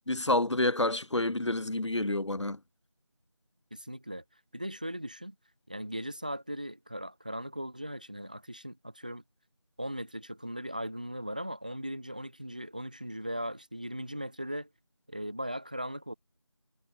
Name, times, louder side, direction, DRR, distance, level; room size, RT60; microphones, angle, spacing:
voice 1, 0.1-2.6, left 2 dB, 80° left, 1.0 m, -28 dB
voice 2, 3.7-4.2 4.5-5.3 5.7-9.2 9.8-14.7 15.1-16.1, equal, 15° right, 1.5 m, -38 dB
figure-of-eight pair, 175°, 15 cm